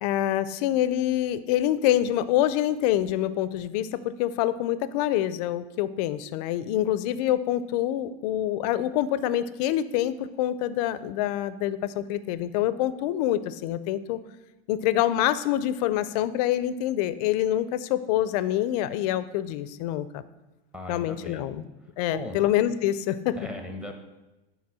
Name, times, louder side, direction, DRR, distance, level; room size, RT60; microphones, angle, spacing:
voice 1, 0.0-14.2 14.7-20.1 20.9-21.6 22.0-23.4, left 12 dB, 40° left, 15 dB, 0.4 m, -26 dB
voice 2, 20.7-21.5 22.1-22.4 23.3-23.9, left 1 dB, 5° right, 4 dB, 0.6 m, -37 dB
8.7 x 4.0 x 6.1 m, 1.0 s
supercardioid pair, 150°, 31 cm